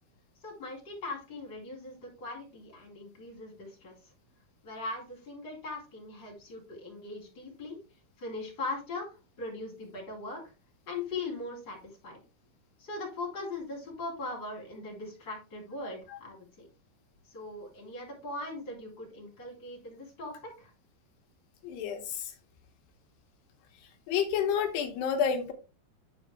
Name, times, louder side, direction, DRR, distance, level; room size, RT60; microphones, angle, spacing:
voice 1, 0.4-4.1 4.6-7.8 8.2-10.4 10.9-12.2 12.8-16.7 17.2-20.7, left 2 dB, 30° left, -1 dB, 3.6 m, -40 dB
voice 2, 21.6-22.3 24.1-25.5, left 7 dB, 85° left, 3 dB, 3.1 m, -29 dB
9.8 x 5.0 x 3.4 m, 0.31 s
omnidirectional pair, 4.7 m